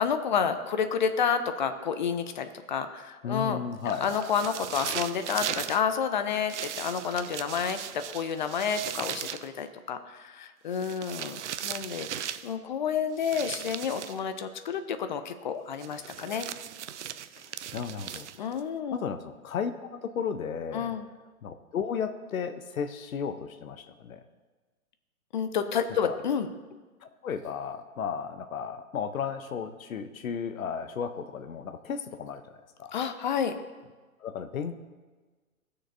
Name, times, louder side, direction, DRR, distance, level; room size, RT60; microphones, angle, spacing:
voice 1, 0.0-3.6 3.8-16.5 18.4-19.0 20.7-21.1 25.3-26.5 32.9-33.5, left 7 dB, 35° left, 9 dB, 0.5 m, -30 dB
voice 2, 3.2-4.2 17.7-18.3 18.9-21.0 21.4-24.2 26.0-26.2 27.0-32.9 34.2-34.7, left 7 dB, 65° left, 9 dB, 0.9 m, -34 dB
sound 1, 3.9-5.8 6.5-9.5 10.7-12.5 13.2-14.2 15.8-18.6, right 10 dB, 55° right, 0.5 m, -38 dB
17.0 x 6.6 x 2.7 m, 1.3 s
figure-of-eight pair, 120°, 44 cm